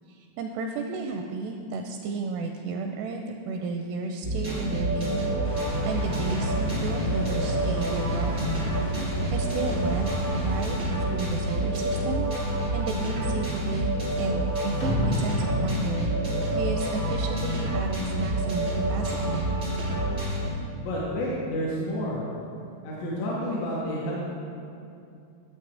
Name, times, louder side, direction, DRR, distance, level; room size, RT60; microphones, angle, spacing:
voice 1, 0.1-8.7 9.1-19.4, right 4 dB, 85° right, 4 dB, 2.4 m, -33 dB
sound 1, 4.2-20.5, right 1 dB, 50° right, 0.8 m, -28 dB
Water, 5.4-10.7, equal, 45° left, 0.7 m, -35 dB
sound 2, 14.8-17.3, left 1 dB, 65° left, 2.0 m, -30 dB
voice 2, 20.7-22.2 22.8-24.2, equal, 80° left, -6 dB, 3.3 m, -30 dB
12.5 x 7.3 x 3.3 m, 2.5 s
omnidirectional pair, 5.2 m